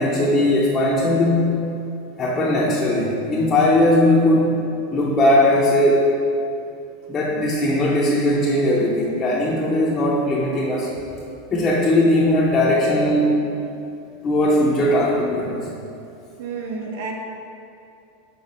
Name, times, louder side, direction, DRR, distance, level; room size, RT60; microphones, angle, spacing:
voice 1, 0.0-1.6 2.2-4.6 4.9-6.1 7.1-10.9 11.5-13.3 14.2-15.7, left 1 dB, 15° left, -5 dB, 0.5 m, -18 dB
voice 2, 16.4-17.1, right 4 dB, 65° right, 1 dB, 0.9 m, -30 dB
5.7 x 3.7 x 5.4 m, 2.6 s
supercardioid pair, 175°, 0 cm